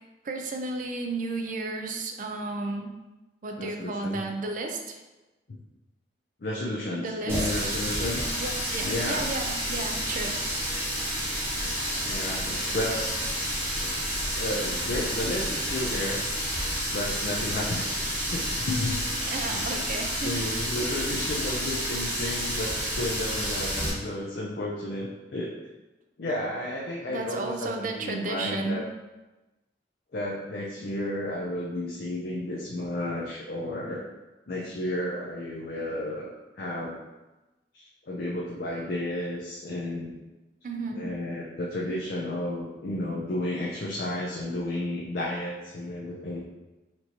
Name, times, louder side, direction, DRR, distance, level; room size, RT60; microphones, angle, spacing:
voice 1, 0.2-2.9 3.4-5.0 6.9-7.5 8.4-10.4 19.3-20.3 20.8-21.0 21.2-21.3 27.1-28.8 40.6-41.0, right 3 dB, 50° right, 4 dB, 0.4 m, -33 dB
voice 2, 3.6-4.2 5.5-5.6 6.4-8.3 8.8-9.2 12.0-13.1 14.3-16.2 16.9-18.0 18.3-19.1 19.5-19.9 20.2-25.5 26.2-28.8 30.1-34.0 34.5-37.0 37.7-40.1 40.9-46.4, left 1 dB, 55° left, -4 dB, 0.5 m, -32 dB
Water tap faucet, 7.3-23.9, equal, 15° right, 1.0 m, -30 dB
4.4 x 2.7 x 2.9 m, 1.1 s
head